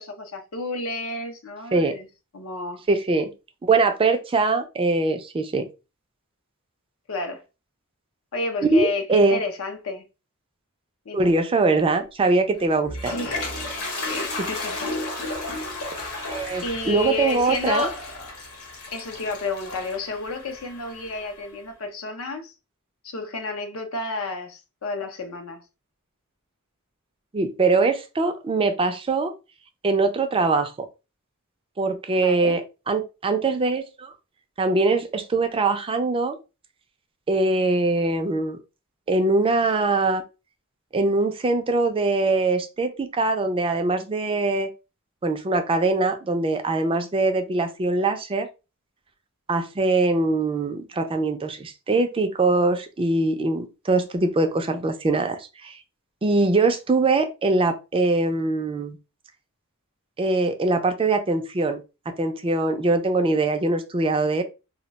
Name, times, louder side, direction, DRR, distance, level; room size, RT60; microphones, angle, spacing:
voice 1, 0.0-2.1 2.3-2.8 7.1-7.4 8.3-10.0 11.1-11.2 13.0-13.4 14.0-14.8 16.6-18.4 18.9-22.5 23.0-25.6 32.2-32.6, left 3 dB, 65° left, 0.6 m, -31 dB
voice 2, 2.9-3.3 3.6-5.7 8.7-9.4 11.1-13.1 14.4-14.5 16.2-17.9 27.3-29.3 29.8-30.7 31.8-32.6 32.9-34.1 34.6-36.4 37.3-38.6 39.1-40.2 40.9-44.7 45.2-48.5 49.5-55.8 56.2-59.0 60.2-61.8 62.1-64.4, right 3 dB, 25° right, 0.4 m, -22 dB
Toilet flush, 12.6-21.5, left 2 dB, 85° left, 0.9 m, -33 dB
2.3 x 2.1 x 3.9 m
head